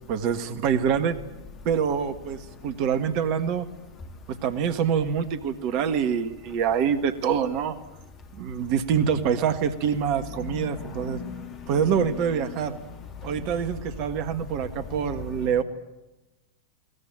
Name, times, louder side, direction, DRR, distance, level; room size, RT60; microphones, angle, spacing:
voice 1, 0.1-1.1 1.7-3.7 4.4-7.8 8.3-11.2 11.7-12.7 13.2-15.6, right 7 dB, 45° right, 1.7 m, -25 dB
voice 2, 10.3-12.6 13.4-13.5 14.7-15.6, left 5 dB, 30° left, 3.2 m, -38 dB
22.0 x 19.5 x 9.1 m
figure-of-eight pair, 90°, 0 cm